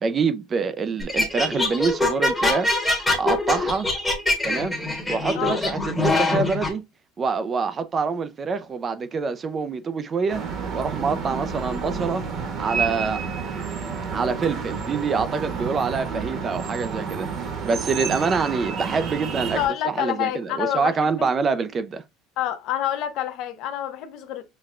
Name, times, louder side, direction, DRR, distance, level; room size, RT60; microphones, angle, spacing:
voice 1, 0.0-2.8 3.2-3.9 4.4-4.8 5.1-6.8 7.2-10.4 10.7-12.2 12.6-13.2 14.1-17.3 17.6-19.6 19.9-22.0, right 5 dB, 25° right, 0.3 m, -25 dB
sound 1, 1.0-6.7, left 2 dB, 10° left, 1.0 m, -23 dB
sound 2, 10.3-19.7, right 5 dB, 40° right, 0.9 m, -30 dB
voice 2, 19.2-21.3 22.4-24.4, left 11 dB, 55° left, 0.7 m, -28 dB
5.7 x 2.1 x 2.4 m
cardioid pair, 140°, 0 cm